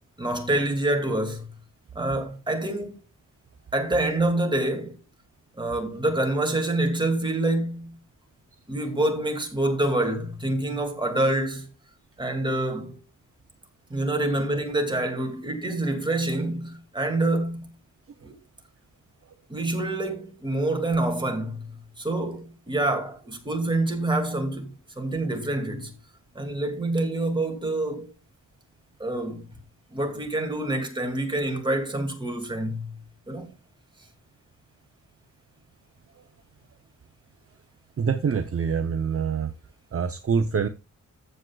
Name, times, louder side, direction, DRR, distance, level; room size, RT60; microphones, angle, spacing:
voice 1, 0.2-1.5 1.9-3.0 3.7-5.0 5.6-8.0 8.7-11.7 12.2-13.0 13.9-17.7 18.2-18.3 19.5-25.9 26.4-28.1 29.0-29.5 29.9-33.0 33.3-33.5, right 2 dB, 15° right, 2.2 m, -27 dB
voice 2, 38.0-39.5 39.9-40.7, right 6 dB, 45° right, 0.7 m, -25 dB
14.5 x 7.7 x 2.3 m
wide cardioid pair, 170°, 32 cm